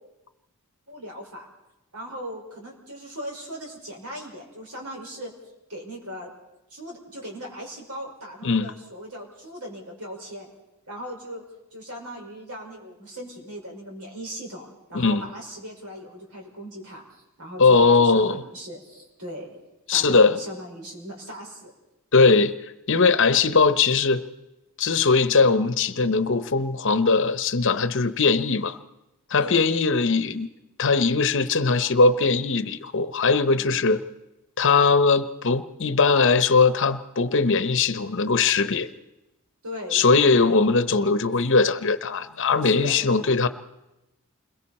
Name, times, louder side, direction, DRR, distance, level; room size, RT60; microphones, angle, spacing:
voice 1, 0.9-1.4 1.9-5.3 5.7-6.3 6.7-10.5 10.9-11.4 11.7-19.6 19.9-21.7 29.4-29.7 33.6-33.8 39.6-40.7 40.9-41.1 42.6-43.0, equal, 80° right, 0 dB, 5.2 m, -38 dB
voice 2, 14.9-15.3 17.6-18.4 19.9-20.4 22.1-22.5 22.9-24.2 24.8-28.8 29.3-30.5 30.8-34.0 34.6-38.9 39.9-43.5, left 4 dB, 55° left, 13 dB, 0.8 m, -20 dB
29.0 x 22.0 x 4.3 m, 0.95 s
head